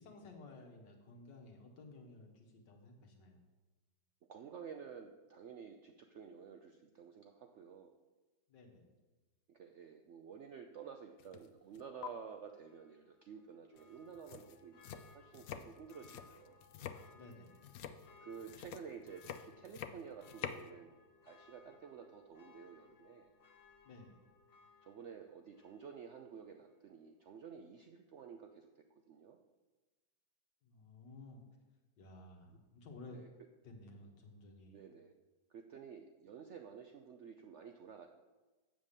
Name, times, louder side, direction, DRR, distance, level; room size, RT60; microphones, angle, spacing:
voice 1, 0.0-3.4 8.5-8.9 17.1-17.7 23.8-24.2 30.6-31.4 32.0-33.2 33.6-34.8, left 2 dB, 85° left, 2 dB, 2.0 m, -55 dB
voice 2, 4.3-7.9 9.5-16.7 18.2-20.9 21.2-23.3 24.8-29.4 33.1-33.3 34.7-35.2 35.5-38.1, right 7 dB, 75° right, 5 dB, 0.6 m, -52 dB
sound 1, 11.2-11.5 11.7-12.1 13.8-13.9 14.1-20.7, left 9 dB, 70° left, 0.8 m, -48 dB
Church bell, 12.6-26.3 26.7-26.8, left 4 dB, 40° left, 1.0 m, -65 dB
7.4 x 6.6 x 7.3 m, 1.2 s
omnidirectional pair, 1.8 m